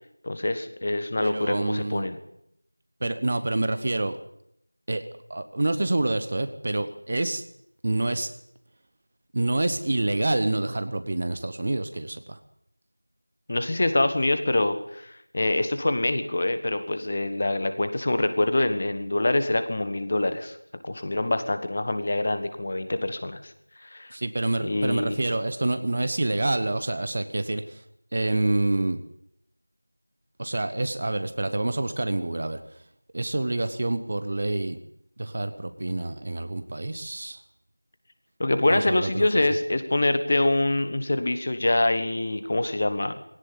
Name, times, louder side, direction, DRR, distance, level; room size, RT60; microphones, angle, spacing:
voice 1, 0.2-2.2 13.5-20.6 20.8-23.5 23.8-24.2 24.6-25.2 38.4-43.1, left 2 dB, 25° left, 10 dB, 1.5 m, -25 dB
voice 2, 1.2-2.1 3.0-4.2 4.9-7.4 7.8-8.3 9.3-12.4 24.1-27.8 28.1-29.0 30.4-32.6 33.1-34.8 35.2-37.4 38.7-39.3, right 2 dB, 25° right, 10 dB, 0.9 m, -27 dB
20.0 x 18.0 x 9.8 m, 0.76 s
figure-of-eight pair, 175°, 0 cm